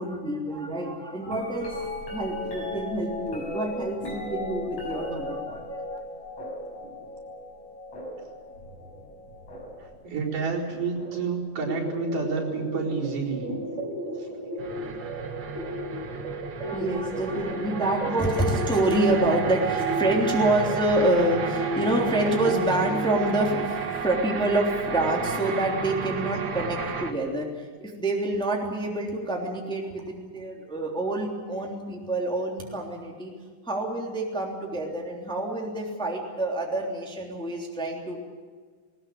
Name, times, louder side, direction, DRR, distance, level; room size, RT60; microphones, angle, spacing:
voice 1, 0.0-6.0 16.6-33.3 33.6-38.2, right 1 dB, ahead, -1 dB, 2.9 m, -27 dB
sound 1, 1.3-11.4 12.3-12.7 13.5-14.5 16.2-16.3, left 2 dB, 55° left, 7.9 m, -37 dB
voice 2, 9.8-13.5 14.2-14.3 14.8-14.9, right 4 dB, 70° right, -3 dB, 6.0 m, -29 dB
sound 2, 11.7-22.9, equal, 20° right, 3.7 m, -34 dB
sound 3, 14.6-27.1, right 6 dB, 40° right, 1.6 m, -32 dB
20.0 x 20.0 x 8.8 m, 1.5 s
omnidirectional pair, 3.8 m